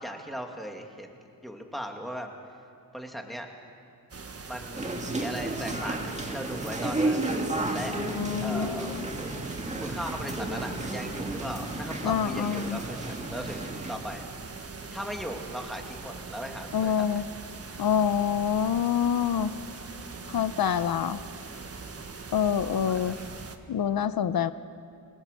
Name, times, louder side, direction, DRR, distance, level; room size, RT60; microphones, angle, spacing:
voice 1, 0.0-2.3 2.9-3.5 4.5-7.4 7.7-7.9 8.4-9.0 9.8-14.2 14.9-17.2 21.5-21.7 22.7-23.3, equal, ahead, 2 dB, 2.5 m, -38 dB
sound 1, 4.1-23.6, right 4 dB, 40° right, 1.6 m, -42 dB
sound 2, 4.7-14.0, right 2 dB, 20° right, 2.1 m, -32 dB
voice 2, 8.0-9.0 12.0-12.8 16.7-17.2 17.8-19.5 20.3-21.2 22.3-23.2 23.7-24.5, left 8 dB, 70° left, 12 dB, 0.8 m, -26 dB
29.5 x 22.0 x 6.9 m, 2.4 s
wide cardioid pair, 130°, 37 cm